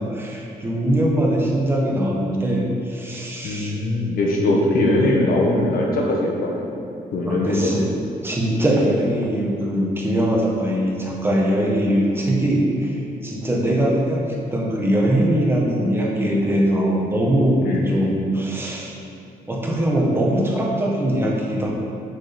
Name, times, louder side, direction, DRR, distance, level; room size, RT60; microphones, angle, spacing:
voice 1, 0.0-3.7 7.2-7.9 8.2-19.0 19.5-21.7, right 1 dB, 15° right, -3 dB, 1.3 m, -21 dB
voice 2, 3.4-6.7 7.1-7.9 17.6-17.9, left 1 dB, 70° left, -2 dB, 1.3 m, -21 dB
6.6 x 6.3 x 5.2 m, 2.6 s
wide cardioid pair, 160°, 16 cm